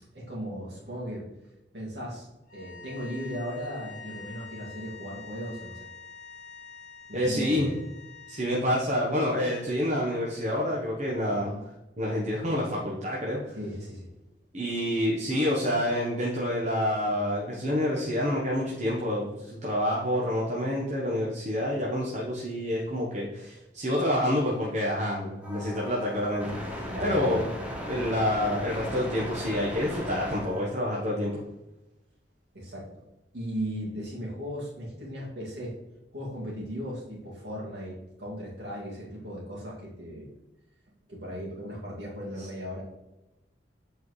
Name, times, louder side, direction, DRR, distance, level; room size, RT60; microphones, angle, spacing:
voice 1, 0.1-1.3 1.7-2.3 2.5-5.8 7.1-7.8 11.3-11.6 13.5-14.1 26.9-27.4 32.5-32.9 33.3-35.7 36.1-40.3 41.1-42.8, equal, 65° right, -5 dB, 2.3 m, -37 dB
sound 1, 2.5-8.6, left 5 dB, 50° left, 1.6 m, -46 dB
voice 2, 7.1-7.7 8.3-11.5 12.0-13.4 14.5-27.5 27.9-31.4, left 1 dB, 40° right, -5 dB, 1.0 m, -28 dB
sound 2, 25.4-30.6, equal, 10° right, 1.2 m, -37 dB
7.4 x 4.5 x 3.2 m, 0.98 s
head